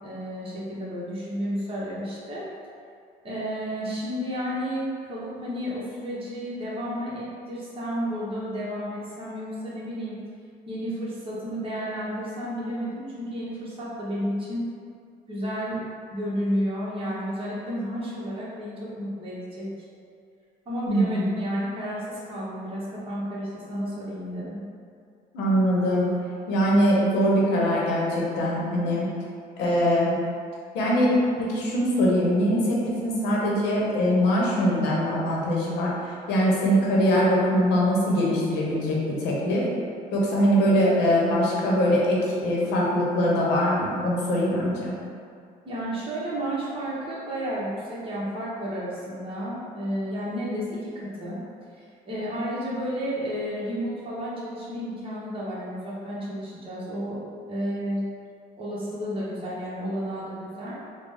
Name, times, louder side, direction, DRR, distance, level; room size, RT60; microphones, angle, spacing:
voice 1, 0.0-2.5 3.2-10.2 10.7-14.6 15.3-15.8 16.1-19.7 20.7-24.6 45.6-51.4 51.8-57.2 57.5-58.0 58.6-60.8, equal, 30° right, -8 dB, 1.1 m, -32 dB
voice 2, 20.8-21.4 25.3-26.1 26.5-29.1 29.6-30.2 30.7-35.9 36.3-39.6 40.1-44.9, equal, 90° left, -4 dB, 0.9 m, -22 dB
3.9 x 2.2 x 3.4 m, 2.3 s
cardioid pair, 110°, 17 cm